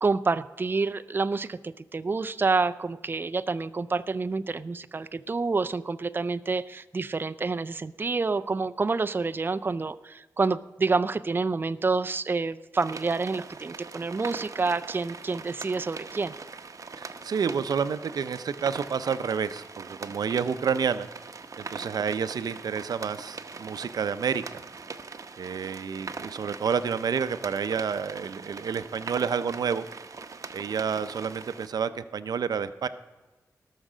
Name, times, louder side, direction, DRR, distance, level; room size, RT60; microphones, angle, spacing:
voice 1, 0.0-16.3, right 4 dB, 35° right, 12 dB, 0.4 m, -28 dB
sound 1, 12.7-31.7, right 4 dB, 55° right, 0.8 m, -42 dB
voice 2, 17.0-21.1 21.6-24.4 25.4-29.9 30.5-32.9, right 6 dB, 85° right, 12 dB, 0.5 m, -29 dB
19.0 x 6.5 x 5.0 m, 1.2 s
cardioid pair, 65°, 7 cm